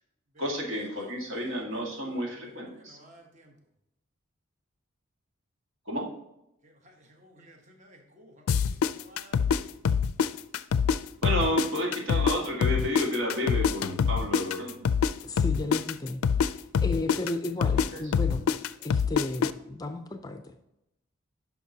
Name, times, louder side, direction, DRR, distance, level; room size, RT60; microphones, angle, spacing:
voice 1, 0.4-3.0 5.9-6.2 11.2-14.9 17.9-18.0, equal, 75° right, 1.8 m, -31 dB
voice 2, 1.0-2.2 2.8-3.5 6.6-8.4 8.8-9.7, equal, 35° right, 1.0 m, -54 dB
sound 1, 8.5-11.0 11.2-15.1 15.4-19.5, left 6 dB, 85° left, 0.4 m, -25 dB
voice 3, 15.2-18.4 18.8-20.5, left 2 dB, 15° left, 0.4 m, -34 dB
11.0 x 5.8 x 2.8 m
head